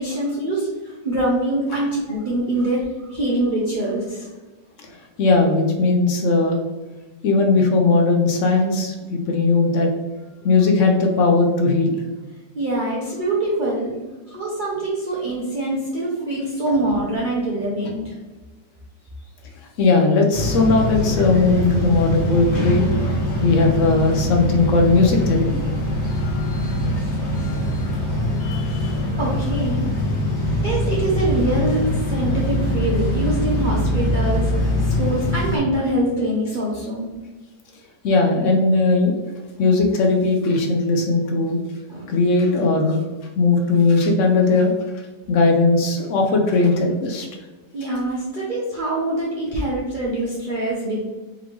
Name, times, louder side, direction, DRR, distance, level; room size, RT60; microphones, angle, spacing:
voice 1, 0.0-4.3 12.5-13.9 14.3-18.0 29.2-29.8 30.6-31.8 32.1-34.7 35.0-37.1 41.9-42.1 47.7-51.0, right 1 dB, 70° right, -6 dB, 0.4 m, -24 dB
voice 2, 5.2-6.6 7.2-9.9 10.4-12.0 19.8-22.9 23.4-25.5 28.4-29.0 38.0-39.1 39.6-41.6 42.1-43.0 43.4-44.7 45.3-47.3, left 3 dB, 75° left, 2 dB, 0.7 m, -18 dB
sound 1, 20.3-35.6, left 1 dB, 50° left, 0.9 m, -23 dB
3.7 x 3.6 x 3.0 m, 1.2 s
omnidirectional pair, 2.0 m